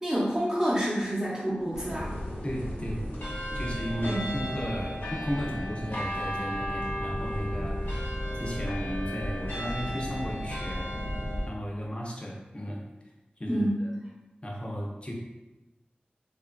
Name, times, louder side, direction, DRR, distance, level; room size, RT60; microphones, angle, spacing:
voice 1, 0.0-2.2 4.0-4.3 13.5-13.8, equal, 15° right, -8 dB, 0.8 m, -28 dB
sound 1, 1.7-11.5, equal, 90° left, 1.0 m, -33 dB
voice 2, 2.4-3.0 3.5-10.9 11.4-12.8 13.4-13.9 14.4-15.1, equal, 35° left, -3 dB, 0.6 m, -35 dB
3.1 x 2.5 x 2.2 m, 1.1 s
wide cardioid pair, 50°, 3 cm